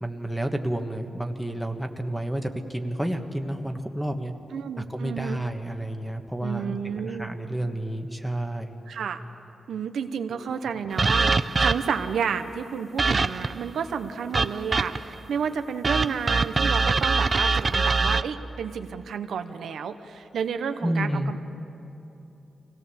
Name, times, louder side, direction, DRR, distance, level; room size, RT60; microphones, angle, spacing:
voice 1, 0.0-4.3 4.8-6.8 7.0-8.7 10.3-10.7 20.8-21.3, right 1 dB, ahead, 4 dB, 1.4 m, -30 dB
voice 2, 4.5-5.4 6.4-7.3 8.9-9.2 9.7-21.4, right 7 dB, 85° right, 8 dB, 0.9 m, -31 dB
sound 1, 11.0-12.1 13.0-13.6 14.3-15.1 15.8-18.2, right 4 dB, 35° right, 0.5 m, -23 dB
24.5 x 17.5 x 7.1 m, 2.9 s
cardioid pair, 100°, 0 cm